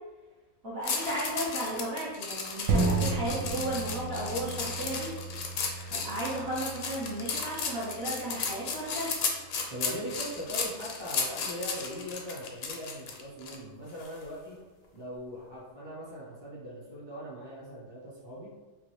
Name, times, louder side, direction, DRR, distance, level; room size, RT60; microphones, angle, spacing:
voice 1, 0.6-5.1 5.9-9.1, right 1 dB, 45° right, -7 dB, 1.2 m, -34 dB
sound 1, 0.8-13.6 14.0-14.2, left 5 dB, 65° left, 0.6 m, -34 dB
sound 2, 2.7-11.5 11.9-12.0, right 3 dB, 65° right, 0.9 m, -35 dB
voice 2, 9.7-14.5 14.9-18.5, equal, 20° right, -7 dB, 0.9 m, -40 dB
4.7 x 2.1 x 3.1 m, 1.3 s
omnidirectional pair, 1.5 m